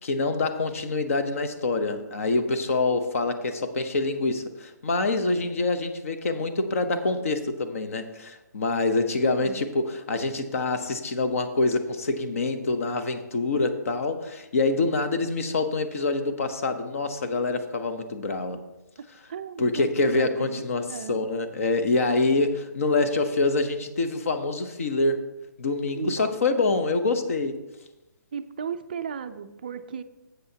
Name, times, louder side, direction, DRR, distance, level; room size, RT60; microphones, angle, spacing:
voice 1, 0.0-18.6 19.6-25.2 25.6-27.6, left 3 dB, 45° left, 7 dB, 0.9 m, -26 dB
voice 2, 9.2-9.6 19.0-21.2 25.9-26.4 28.3-30.0, right 7 dB, 30° right, 9 dB, 0.4 m, -36 dB
12.5 x 8.0 x 2.8 m, 0.98 s
hypercardioid pair, 175°, 11 cm